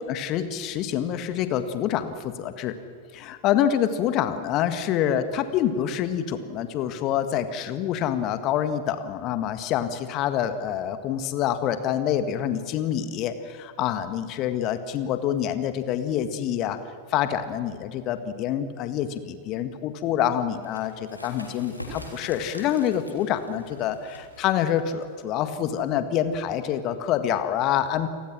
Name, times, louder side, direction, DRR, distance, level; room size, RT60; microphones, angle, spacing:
voice 1, 0.0-2.7 3.1-16.8 17.1-28.1, left 10 dB, 40° left, 10 dB, 1.8 m, -26 dB
sound 1, 20.5-25.9, equal, 90° left, 3.6 m, -44 dB
29.5 x 19.5 x 6.3 m, 2.2 s
figure-of-eight pair, 90°, 0 cm